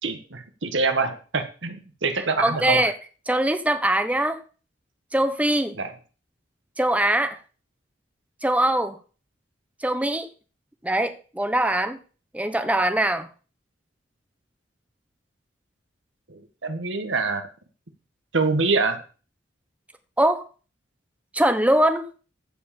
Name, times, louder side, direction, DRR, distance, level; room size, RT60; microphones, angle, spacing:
voice 1, 0.0-2.9 5.8-5.9 16.3-17.4 18.3-19.0, right 4 dB, 80° right, 1.8 m, -25 dB
voice 2, 2.4-2.9 3.3-4.4 5.1-5.8 6.8-7.4 8.4-9.0 9.8-10.3 10.8-12.0 12.3-13.3 20.2-20.5 21.3-22.1, right 1 dB, 10° right, 1.0 m, -22 dB
15.0 x 5.1 x 7.1 m
head